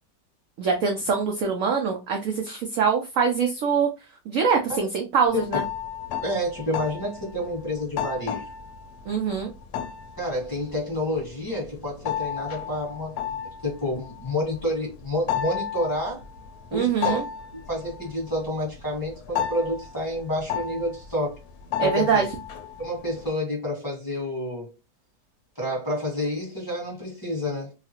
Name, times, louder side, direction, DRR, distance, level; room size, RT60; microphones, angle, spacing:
voice 1, 0.6-3.9 4.3-5.6 9.1-9.5 16.7-17.2 21.8-22.3, right 6 dB, 75° right, 0.7 m, -24 dB
sound 1, 5.3-23.3, left 9 dB, 70° left, 1.0 m, -33 dB
voice 2, 6.2-8.4 10.2-16.2 16.7-17.2 17.7-21.4 21.8-22.3 22.8-24.7 25.6-27.7, left 1 dB, 15° left, 1.1 m, -29 dB
2.9 x 2.4 x 2.8 m
omnidirectional pair, 1.9 m